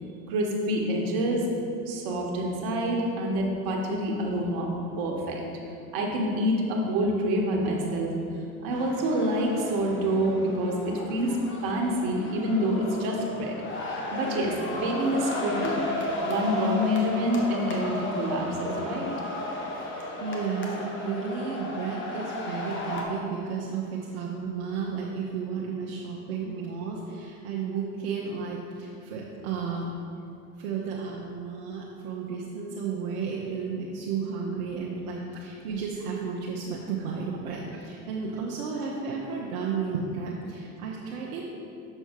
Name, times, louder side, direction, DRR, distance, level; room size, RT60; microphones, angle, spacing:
voice 1, 0.3-1.5 1.9-5.4 5.9-8.1 8.6-11.4 11.6-13.6 14.1-15.8 16.2-19.1, equal, 60° right, 0 dB, 1.4 m, -27 dB
sound 1, 8.7-23.0, left 1 dB, 30° left, 1.2 m, -34 dB
voice 2, 19.8-29.9 30.6-41.5, right 5 dB, 75° right, -3 dB, 0.8 m, -33 dB
6.7 x 4.5 x 4.5 m, 2.7 s
hypercardioid pair, 80°, 42 cm